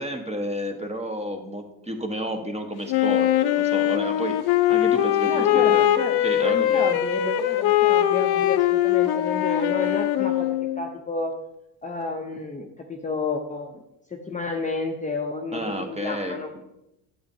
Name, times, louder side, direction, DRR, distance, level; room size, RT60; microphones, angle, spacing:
voice 1, 0.0-4.4 4.7-5.9 6.2-6.8 15.5-16.4, equal, 15° right, 5 dB, 1.1 m, -31 dB
Wind instrument woodwind instrument, 2.9-10.9, left 12 dB, 50° left, 0.6 m, -21 dB
voice 2, 5.2-10.5 10.7-11.3 11.8-13.8 14.1-16.6, left 3 dB, 15° left, 1 dB, 0.7 m, -31 dB
8.6 x 6.9 x 2.7 m, 0.87 s
supercardioid pair, 80°, 49 cm